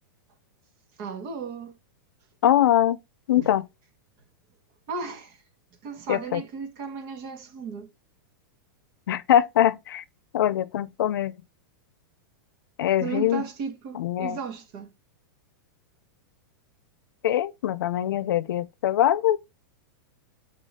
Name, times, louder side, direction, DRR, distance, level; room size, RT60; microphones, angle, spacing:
voice 1, 1.0-1.8 3.4-3.5 4.9-5.4 5.8-7.9 13.0-14.9, right 5 dB, 35° right, 1.3 m, -35 dB
voice 2, 2.4-3.0 3.3-3.7 6.1-6.4 9.1-10.0 10.3-11.3 12.8-13.4 13.9-14.4 17.2-19.4, left 11 dB, 75° left, 0.7 m, -23 dB
7.5 x 3.8 x 4.2 m
supercardioid pair, 165°, 11 cm